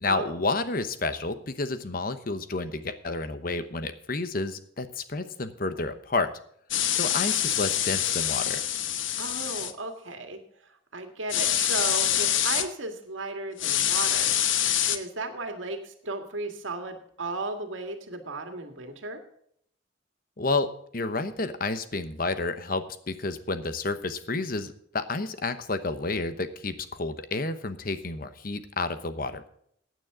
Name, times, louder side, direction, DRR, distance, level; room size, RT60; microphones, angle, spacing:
voice 1, 0.0-6.3 6.9-8.6 20.4-20.7 20.9-29.5, left 3 dB, 45° left, 11 dB, 1.0 m, -30 dB
sound 1, 6.7-9.7 11.3-12.7 13.6-15.0, left 11 dB, 80° left, 1.0 m, -25 dB
voice 2, 9.2-10.4 10.9-14.3 14.8-19.2, right 3 dB, 80° right, 6 dB, 2.0 m, -35 dB
15.5 x 9.4 x 3.7 m, 0.68 s
head